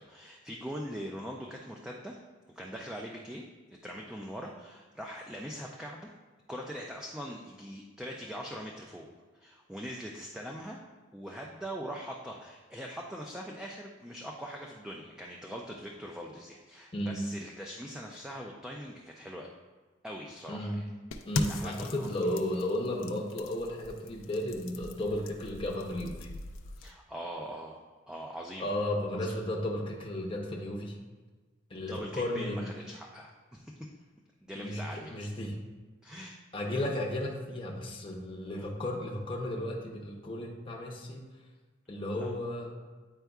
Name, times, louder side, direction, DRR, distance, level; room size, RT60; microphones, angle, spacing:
voice 1, 0.0-2.2 2.5-3.4 3.7-6.1 6.5-9.1 9.3-10.8 11.1-19.5 20.0-20.8 21.5-22.3 26.8-28.7 29.1-29.3 31.9-33.7 34.4-35.3 36.0-36.4 38.5-38.7 42.2-42.3, equal, 5° right, -1 dB, 0.3 m, -42 dB
voice 2, 20.5-20.8 21.3-26.3 28.6-31.0 31.7-32.7 34.5-35.6 36.5-41.3 41.9-42.7, left 1 dB, 25° left, -1 dB, 0.7 m, -34 dB
rock falls with cracking, 21.1-26.9, left 3 dB, 85° left, 0.5 m, -39 dB
9.0 x 4.5 x 2.3 m, 1.3 s
head